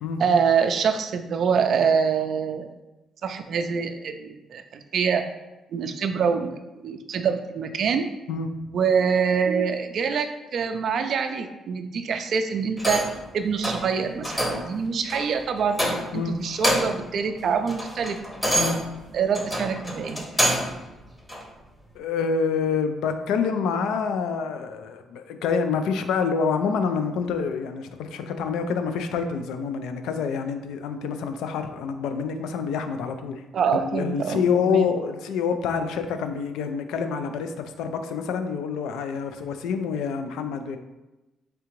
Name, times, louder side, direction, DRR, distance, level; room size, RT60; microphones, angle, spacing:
voice 1, 0.2-2.7 3.2-5.2 5.7-8.1 8.7-13.0 13.3-15.8 16.1-18.2 19.1-20.3 33.5-34.9, right 6 dB, 60° right, 6 dB, 0.3 m, -25 dB
sound 1, 12.8-13.2 13.6-13.9 14.2-14.7 15.1-15.3 15.7-16.2 16.5-17.1 17.4-20.8 21.3-21.4, equal, 15° left, 0.8 m, -26 dB
voice 2, 21.9-33.4 33.7-40.8, left 6 dB, 90° left, 8 dB, 0.3 m, -27 dB
3.7 x 3.3 x 3.0 m, 1.0 s
cardioid pair, 90°, 0 cm